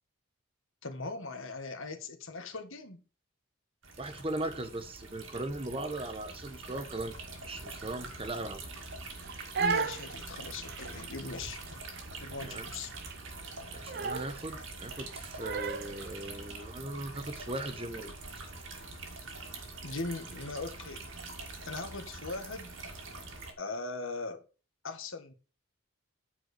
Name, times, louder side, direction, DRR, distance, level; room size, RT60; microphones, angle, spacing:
voice 1, 0.8-3.0 9.6-11.8 12.2-12.9 19.8-21.0 21.7-22.7 23.6-24.4 24.8-25.3, left 3 dB, 70° left, 1.7 m, -39 dB
sound 1, 3.8-23.5, right 3 dB, 65° right, 2.3 m, -45 dB
voice 2, 4.0-7.1 7.5-8.7 12.4-12.7 13.7-18.1, right 2 dB, 25° right, 1.2 m, -38 dB
Crying sobbing, 9.2-16.0, right 5 dB, 45° right, 0.7 m, -36 dB
9.3 x 4.8 x 6.7 m
head